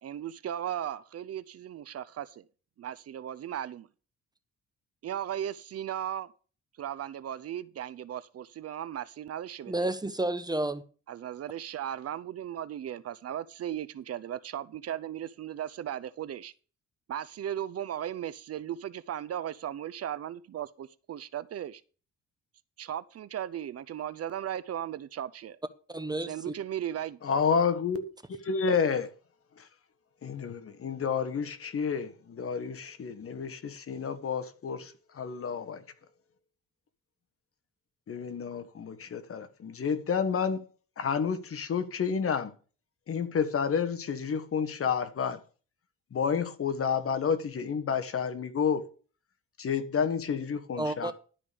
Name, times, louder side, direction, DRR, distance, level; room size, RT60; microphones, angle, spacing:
voice 1, 0.0-2.4 2.8-3.9 5.0-6.3 6.8-9.7 11.1-16.5 17.1-21.8 22.8-25.6 26.3-27.2, right 10 dB, 55° right, 0.6 m, -36 dB
voice 2, 9.7-10.8 25.9-26.5 50.8-51.1, right 2 dB, 15° right, 0.9 m, -31 dB
voice 3, 27.2-28.0 28.4-29.1 30.2-35.8 38.1-40.7 41.0-42.5 43.1-45.4 46.1-48.8 49.6-51.1, left 6 dB, 50° left, 1.4 m, -30 dB
12.0 x 5.2 x 6.8 m
cardioid pair, 90°, 30 cm